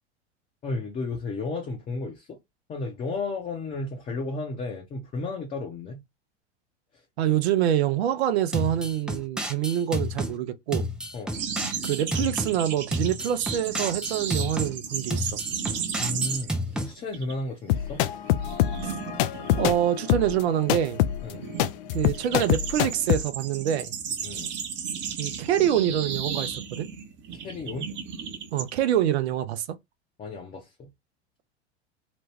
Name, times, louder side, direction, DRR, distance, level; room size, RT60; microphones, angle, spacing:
voice 1, 0.6-2.4 2.7-6.0 11.1-11.4 16.0-18.0 21.2-21.5 24.2-24.5 27.3-27.9 30.2-30.9, left 3 dB, 20° left, 0.8 m, -33 dB
voice 2, 7.2-10.9 11.8-15.4 18.8-18.9 19.6-21.0 21.9-23.9 25.2-26.9 28.5-29.8, right 11 dB, 65° right, 0.7 m, -26 dB
sound 1, 8.5-10.3 10.7-12.5 12.9-14.7 15.1-16.9, equal, ahead, 0.3 m, -30 dB
sound 2, 11.3-16.7 17.0-17.3 17.7-28.7, right 7 dB, 30° right, 0.8 m, -34 dB
sound 3, 17.7-23.2, left 13 dB, 55° left, 0.5 m, -25 dB
3.0 x 2.3 x 3.3 m
hypercardioid pair, 90°, 35 cm